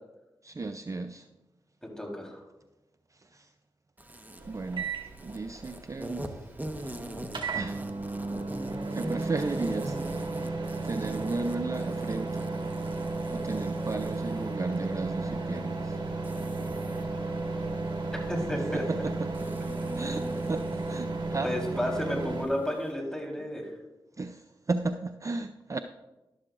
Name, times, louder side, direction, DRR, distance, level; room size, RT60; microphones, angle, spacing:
voice 1, 0.4-1.3 3.1-3.5 4.5-4.9 5.2-6.5 7.5-7.9 8.9-10.3 10.8-12.5 13.3-16.0 18.7-21.5 24.2-25.8, right 3 dB, 35° right, 8 dB, 0.5 m, -34 dB
voice 2, 1.8-2.4 18.3-18.8 21.4-23.7, equal, 5° left, 0 dB, 3.8 m, -32 dB
Insect, 4.0-22.9, right 1 dB, 20° right, 1.2 m, -45 dB
sound 1, 4.4-22.5, right 3 dB, 55° right, 1.9 m, -34 dB
12.0 x 12.0 x 2.5 m, 1.0 s
cardioid pair, 40°, 9 cm